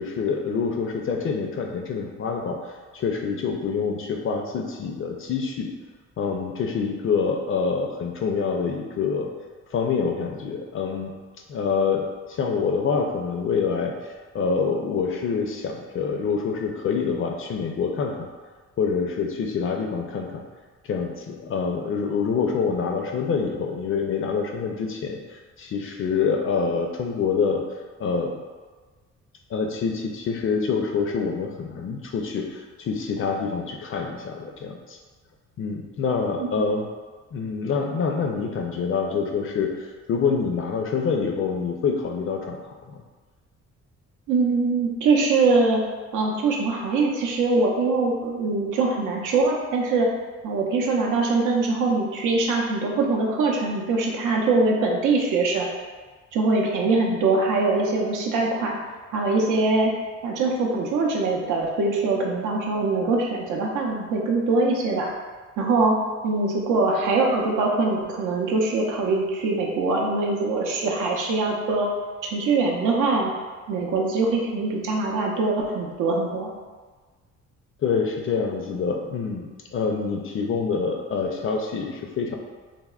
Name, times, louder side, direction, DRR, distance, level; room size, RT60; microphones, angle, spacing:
voice 1, 0.0-2.6 2.9-5.7 6.2-9.3 9.7-11.1 11.5-18.3 18.8-20.4 20.9-27.6 28.0-28.4 29.5-35.0 35.6-36.9 37.3-39.7 40.1-42.6 42.9-43.0 77.8-82.4, left 5 dB, 45° left, 2 dB, 0.4 m, -26 dB
voice 2, 44.3-45.8 46.1-50.1 50.4-55.7 56.3-58.8 59.1-59.9 60.2-65.1 65.6-66.0 66.2-71.9 72.2-73.3 73.7-76.5, right 3 dB, 80° right, 0 dB, 0.6 m, -23 dB
3.4 x 2.0 x 2.3 m, 1.4 s
cardioid pair, 90°, 30 cm